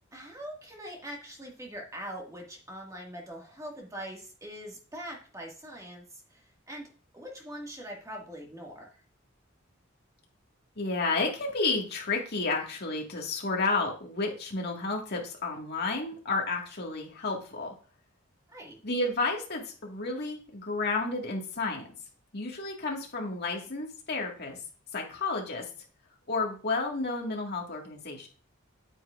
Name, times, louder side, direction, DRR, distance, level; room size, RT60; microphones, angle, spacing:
voice 1, 0.1-6.0 6.3-6.4 6.7-6.9 7.1-8.9 18.5-18.8, equal, 15° right, -1 dB, 1.9 m, -42 dB
voice 2, 10.8-17.7 18.8-21.9 22.3-24.6 24.9-25.7 26.3-28.3, left 3 dB, 55° left, 0 dB, 1.9 m, -31 dB
8.8 x 8.2 x 2.5 m, 0.39 s
head